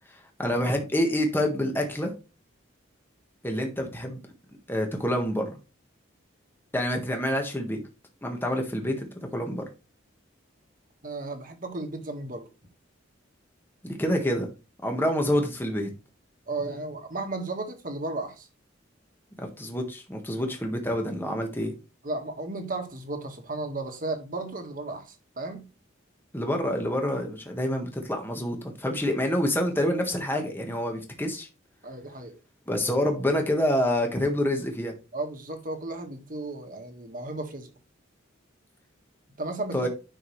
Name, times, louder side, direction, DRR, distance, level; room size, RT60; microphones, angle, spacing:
voice 1, 0.4-2.1 3.4-4.2 4.7-5.5 6.7-7.8 8.2-9.6 13.8-14.5 14.8-15.9 19.4-21.7 26.3-31.5 32.7-34.9 39.7-39.9, left 1 dB, 10° left, 1.4 m, -27 dB
voice 2, 11.0-12.5 16.5-18.5 22.0-25.7 31.8-32.3 35.1-37.7 39.4-39.9, right 2 dB, 45° right, 1.7 m, -34 dB
10.5 x 6.0 x 3.2 m
head